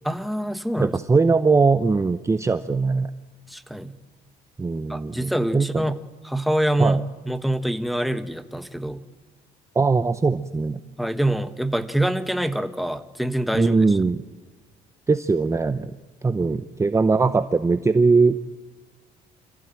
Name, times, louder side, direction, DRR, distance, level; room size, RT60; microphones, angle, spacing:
voice 1, 0.0-0.9 3.5-4.0 4.9-9.0 11.0-14.0, right 1 dB, ahead, 10 dB, 1.2 m, -25 dB
voice 2, 0.8-3.1 4.6-5.2 5.5-5.8 6.8-7.0 9.8-10.8 13.5-14.2 15.1-15.9 16.2-18.5, right 4 dB, 15° right, 12 dB, 0.7 m, -20 dB
26.0 x 15.5 x 9.1 m, 1.3 s
cardioid pair, 110°, 17 cm